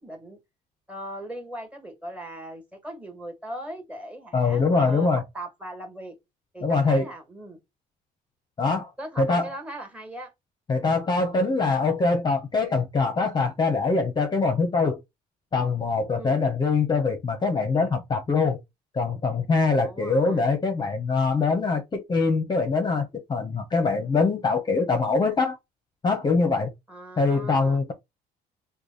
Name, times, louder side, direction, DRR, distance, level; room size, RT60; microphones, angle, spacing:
voice 1, 0.0-0.4 0.9-6.1 6.5-7.6 9.0-10.3 16.1-16.4 19.7-20.5 26.9-27.8, right 1 dB, 10° right, 1.7 m, -39 dB
voice 2, 4.3-5.2 6.6-7.1 8.6-8.9 9.2-9.5 10.7-15.0 15.5-18.6 18.9-25.6 26.0-26.7 27.2-27.9, left 4 dB, 25° left, 0.8 m, -23 dB
3.2 x 2.2 x 3.9 m
cardioid pair, 110°, 17 cm